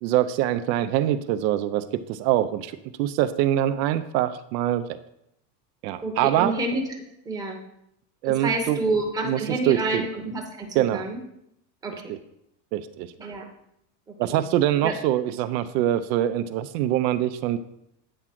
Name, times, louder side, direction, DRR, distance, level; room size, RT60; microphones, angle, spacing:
voice 1, 0.0-2.7 3.0-4.8 5.8-6.5 8.2-8.8 9.2-9.4 9.7-10.0 10.7-11.0 12.1-12.2 12.7-13.1 14.2-17.6, right 12 dB, 85° right, 11 dB, 0.7 m, -24 dB
voice 2, 6.0-6.8 7.2-7.6 8.2-11.2 11.8-12.1 13.2-13.4 14.3-14.4 14.8-14.9, right 2 dB, 10° right, 1 dB, 0.8 m, -28 dB
8.8 x 3.7 x 5.9 m, 0.78 s
cardioid pair, 170°, 50 cm